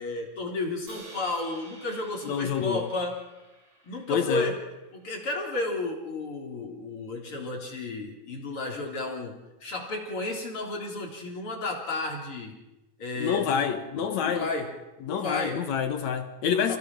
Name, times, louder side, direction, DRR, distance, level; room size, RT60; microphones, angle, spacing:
voice 1, 0.0-3.2 3.8-4.6 4.9-12.6 13.0-14.7 15.1-15.6 16.7-16.8, left 2 dB, 35° left, 4.1 m, -33 dB
Crash cymbal, 0.9-5.1, right 2 dB, 30° right, 6.4 m, -51 dB
voice 2, 2.2-2.9 4.1-4.5 13.2-14.5 15.0-16.8, left 7 dB, 65° left, 1.9 m, -27 dB
29.0 x 18.0 x 6.1 m
omnidirectional pair, 4.5 m